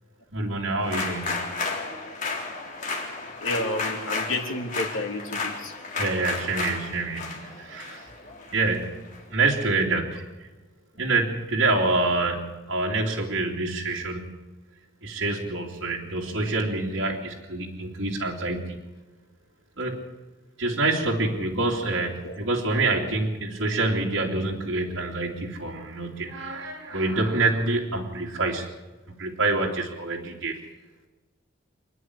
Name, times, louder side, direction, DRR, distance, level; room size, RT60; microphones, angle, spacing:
voice 1, 0.3-1.5 6.0-8.1 8.5-9.0 9.3-10.5 11.0-14.3 15.0-18.8 19.8-20.0 20.6-28.7 29.2-30.5, right 3 dB, 65° right, -2 dB, 3.1 m, -26 dB
sound 1, 0.8-9.2, left 3 dB, 40° left, 3.7 m, -33 dB
voice 2, 3.4-5.8 22.2-22.4, left 2 dB, 75° left, 2 dB, 3.3 m, -30 dB
27.0 x 10.0 x 9.9 m, 1.1 s
head